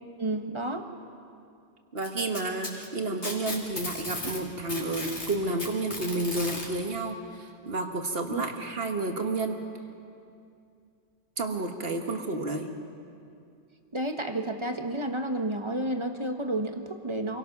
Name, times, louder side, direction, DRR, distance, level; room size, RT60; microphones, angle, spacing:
voice 1, 0.2-0.9 8.3-8.4 13.9-17.4, right 1 dB, 25° right, 5 dB, 1.0 m, -31 dB
voice 2, 1.9-9.6 11.4-12.7, right 2 dB, 45° right, 4 dB, 1.5 m, -31 dB
Packing tape duct tape, 2.0-4.4 4.7-6.7 7.8-7.9 8.4-8.5 9.4-9.5, left 2 dB, 50° left, 3.1 m, -35 dB
26.5 x 17.5 x 5.9 m, 2.4 s
omnidirectional pair, 1.5 m